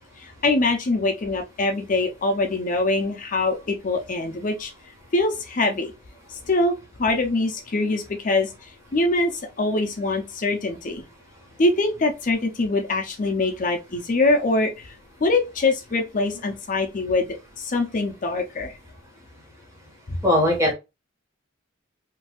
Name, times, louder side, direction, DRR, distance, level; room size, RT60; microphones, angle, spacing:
voice 1, 0.2-4.7 5.1-5.9 6.3-6.7 7.0-8.5 8.9-9.3 9.6-11.0 11.6-14.9 15.2-17.3 17.6-18.7 20.1-20.2, left 2 dB, 45° left, 0.5 m, -23 dB
voice 2, 20.2-20.7, left 1 dB, 15° right, 1.3 m, -19 dB
3.9 x 2.6 x 2.3 m
head